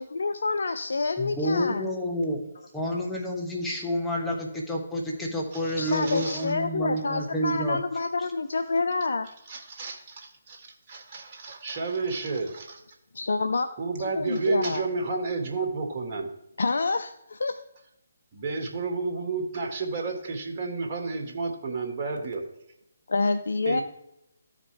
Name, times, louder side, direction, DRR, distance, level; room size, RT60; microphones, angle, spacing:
voice 1, 0.0-1.9 5.8-9.3 13.1-13.7 14.2-14.8 16.6-17.6 23.1-23.8, left 3 dB, 70° left, 9 dB, 0.5 m, -27 dB
voice 2, 1.2-7.8, equal, 5° left, -3 dB, 1.4 m, -29 dB
voice 3, 5.5-6.4 9.5-12.8 13.8-16.3 18.3-22.4 23.7-23.8, right 3 dB, 40° right, 1 dB, 1.9 m, -31 dB
14.0 x 4.9 x 3.4 m, 0.83 s
figure-of-eight pair, 145°, 0 cm